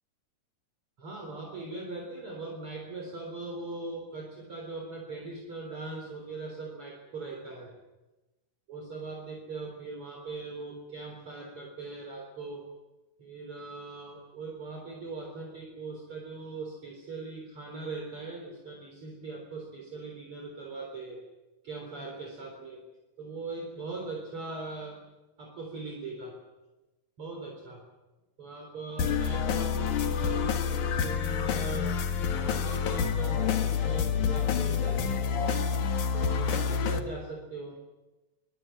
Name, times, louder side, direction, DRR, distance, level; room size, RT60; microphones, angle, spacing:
voice 1, 1.0-7.7 8.7-12.7 13.2-21.2 21.6-22.8 23.2-25.0 25.4-26.4 27.2-27.8 28.4-31.9 32.3-35.0 36.1-37.8, right 3 dB, 40° right, 1 dB, 4.7 m, -40 dB
sound 1, 29.0-37.0, left 7 dB, 70° left, 3.1 m, -28 dB
24.5 x 24.0 x 7.7 m, 1.1 s
omnidirectional pair, 3.7 m